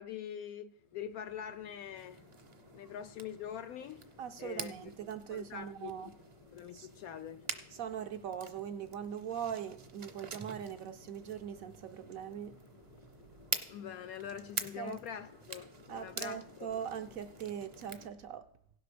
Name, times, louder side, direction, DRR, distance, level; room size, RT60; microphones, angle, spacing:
voice 1, 0.0-2.2 2.7-4.0 4.4-4.7 5.3-6.1 6.5-7.5 13.7-16.7, left 9 dB, 70° left, 0.9 m, -44 dB
sound 1, 0.7-18.1, left 3 dB, 45° left, 0.4 m, -60 dB
sound 2, 1.9-18.1, right 5 dB, 40° right, 0.6 m, -46 dB
voice 2, 4.2-6.1 6.7-6.9 7.7-12.6 14.8-15.0 15.9-18.5, right 8 dB, 70° right, 0.9 m, -41 dB
16.5 x 5.9 x 5.0 m
omnidirectional pair, 1.8 m